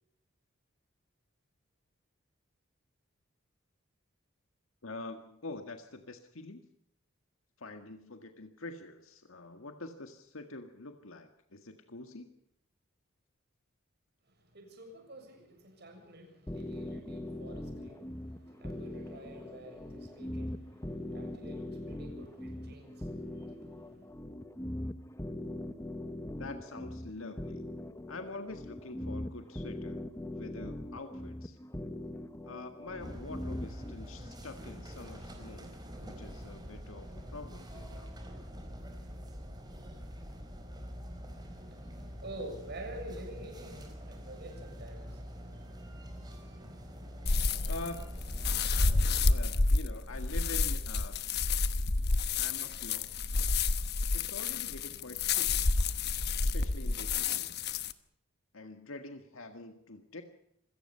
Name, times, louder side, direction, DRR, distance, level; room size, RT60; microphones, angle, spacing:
voice 1, 4.8-6.6 7.6-12.3 26.4-27.6 28.1-30.0 30.4-31.6 32.4-38.1 47.7-48.1 49.2-51.3 52.4-53.1 54.1-55.6 56.4-57.8 58.5-60.2, left 2 dB, 90° left, 6 dB, 1.8 m, -45 dB
voice 2, 14.3-24.1 41.3-47.7, right 1 dB, 55° right, 3 dB, 7.1 m, -49 dB
sound 1, 16.5-33.9, left 1 dB, 15° left, 1.1 m, -41 dB
sound 2, 33.0-49.2, equal, 20° right, 4.3 m, -45 dB
sound 3, 47.3-57.9, left 3 dB, 55° left, 1.1 m, -29 dB
26.5 x 17.5 x 5.7 m, 0.74 s
head